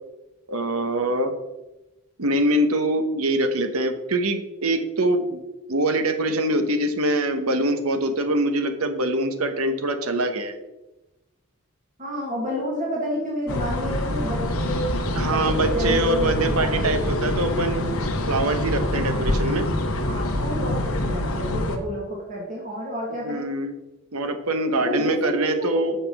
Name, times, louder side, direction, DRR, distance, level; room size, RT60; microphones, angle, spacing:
voice 1, 0.5-1.3 2.2-5.4 5.7-10.6 15.1-17.8 18.3-19.7 23.2-23.7 24.1-26.0, right 1 dB, 85° right, 8 dB, 1.1 m, -24 dB
voice 2, 12.0-14.9 15.3-17.1 18.9-19.5 20.1-23.5 24.8-26.0, equal, 35° right, -4 dB, 2.3 m, -30 dB
sound 1, 13.5-21.8, left 1 dB, 80° left, 1.2 m, -25 dB
6.7 x 5.8 x 7.1 m, 1.0 s
head